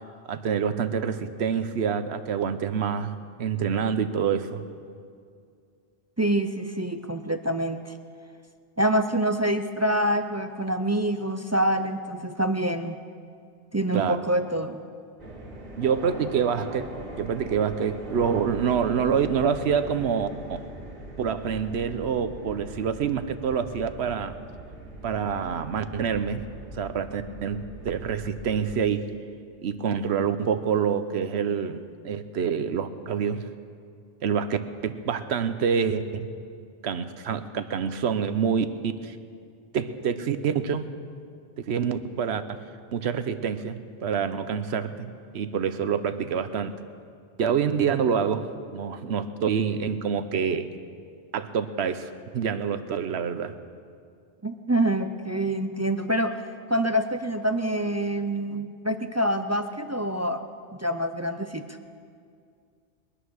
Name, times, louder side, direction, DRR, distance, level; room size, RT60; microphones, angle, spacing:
voice 1, 0.3-3.1 3.4-4.6 13.9-14.2 15.8-16.9 17.2-20.6 21.2-24.3 25.0-26.4 26.7-29.0 29.6-33.4 34.2-36.3 36.8-39.2 39.7-40.9 41.6-42.6 42.9-46.8 47.4-50.7 51.3-53.5, right 7 dB, 65° right, 11 dB, 1.1 m, -27 dB
voice 2, 6.2-7.9 8.8-13.0 13.7-14.8 54.4-56.4 56.7-60.4 60.8-61.7, right 1 dB, 25° right, 7 dB, 0.4 m, -26 dB
sound 1, 15.2-28.8, right 1 dB, 50° right, 2.3 m, -41 dB
22.0 x 9.9 x 6.4 m, 2.3 s
omnidirectional pair, 1.2 m